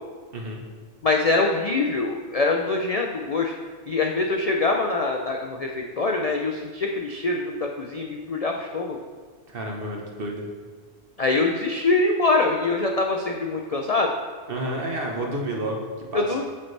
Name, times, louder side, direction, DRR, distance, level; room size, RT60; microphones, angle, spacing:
voice 1, 1.0-3.5 3.9-9.0 11.2-14.1 16.1-16.5, left 3 dB, 55° left, 2 dB, 0.4 m, -24 dB
voice 2, 9.5-10.4 14.5-16.4, right 1 dB, 50° right, 0 dB, 1.3 m, -30 dB
8.4 x 7.5 x 3.3 m, 1.5 s
omnidirectional pair, 1.3 m